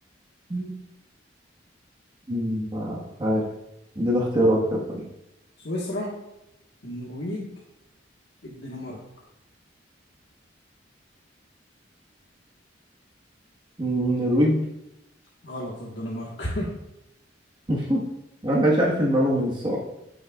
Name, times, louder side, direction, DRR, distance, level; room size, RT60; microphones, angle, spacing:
voice 1, 2.3-3.4 3.9-5.0 13.8-14.6 17.7-18.0 18.4-19.8, equal, 25° right, -4 dB, 1.4 m, -23 dB
voice 2, 5.6-6.2 6.8-7.5 8.4-9.0 15.4-16.7, left 1 dB, 65° left, -4 dB, 1.5 m, -32 dB
13.5 x 6.4 x 2.4 m, 0.90 s
head